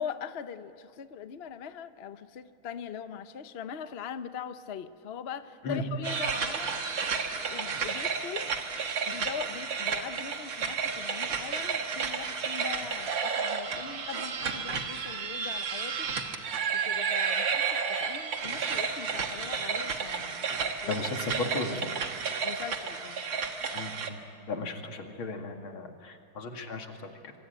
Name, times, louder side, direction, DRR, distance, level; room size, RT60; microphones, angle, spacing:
voice 1, 0.0-6.7 7.5-8.5 9.1-16.1 16.7-21.0 22.4-23.2, left 7 dB, 50° left, 10 dB, 0.7 m, -41 dB
sound 1, 6.0-24.1, right 5 dB, 65° right, 2.4 m, -32 dB
voice 2, 20.9-22.0 23.7-27.3, left 3 dB, 80° left, 4 dB, 3.0 m, -36 dB
26.0 x 24.5 x 9.0 m, 2.3 s
omnidirectional pair, 2.2 m